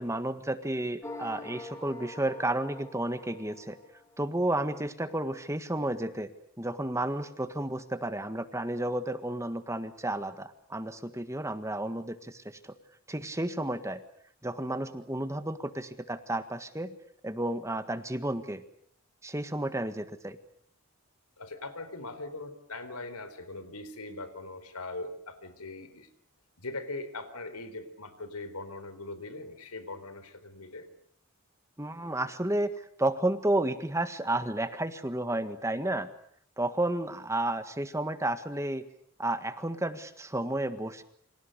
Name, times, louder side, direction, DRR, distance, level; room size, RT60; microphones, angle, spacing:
voice 1, 0.0-3.8 4.2-6.3 6.6-12.7 13.1-14.0 14.4-16.9 17.2-18.6 19.2-20.4 31.8-36.1 36.6-38.8 39.2-41.0, right 1 dB, 15° right, 10 dB, 1.6 m, -32 dB
sound 1, 1.0-4.4, left 2 dB, 15° left, 3.1 m, -45 dB
voice 2, 21.4-26.1 26.6-30.9, left 2 dB, 85° left, 12 dB, 4.2 m, -41 dB
29.0 x 26.0 x 6.7 m, 0.66 s
head